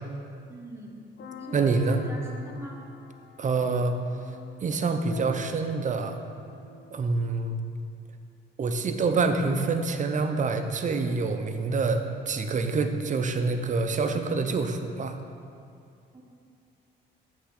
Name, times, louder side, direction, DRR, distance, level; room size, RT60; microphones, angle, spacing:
voice 1, 0.5-1.0 1.4-2.8 16.1-16.2, right 1 dB, 15° right, -3 dB, 1.2 m, -43 dB
sound 1, 1.2-7.0, left 4 dB, 55° left, 0.6 m, -46 dB
voice 2, 1.5-2.0 3.4-4.0 4.6-6.2 6.9-7.6 8.6-15.2, right 4 dB, 40° right, 7 dB, 0.6 m, -26 dB
7.9 x 3.5 x 6.5 m, 2.4 s
cardioid pair, 90°, 20 cm